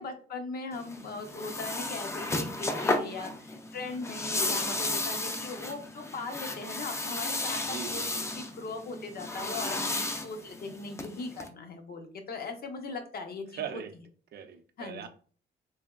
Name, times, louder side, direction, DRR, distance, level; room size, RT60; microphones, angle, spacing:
voice 1, 0.0-13.8 14.8-15.0, left 3 dB, 50° left, 5 dB, 0.7 m, -39 dB
sound 1, 0.7-11.5, left 2 dB, 15° left, 0.4 m, -34 dB
voice 2, 7.5-8.2 13.6-13.9 14.3-15.1, right 8 dB, 55° right, 7 dB, 0.5 m, -40 dB
3.3 x 2.2 x 2.2 m, 0.42 s
cardioid pair, 90°, 20 cm